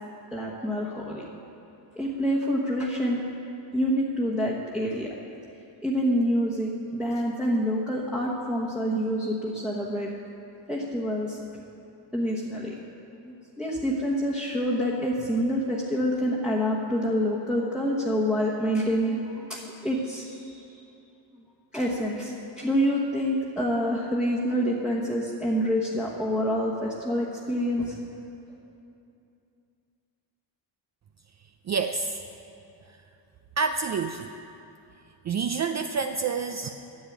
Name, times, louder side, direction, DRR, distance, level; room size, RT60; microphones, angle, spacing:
voice 1, 0.3-1.2 2.0-3.2 3.7-5.1 5.8-10.1 10.7-11.4 12.1-12.7 13.2-20.8 21.3-21.4 21.7-28.2 28.5-28.6, equal, ahead, -6 dB, 1.2 m, -27 dB
voice 2, 31.7-32.2 32.9-33.0 33.6-34.3 35.2-36.7, right 5 dB, 40° right, 6 dB, 0.4 m, -28 dB
10.5 x 7.3 x 8.6 m, 2.7 s
cardioid pair, 110°, 47 cm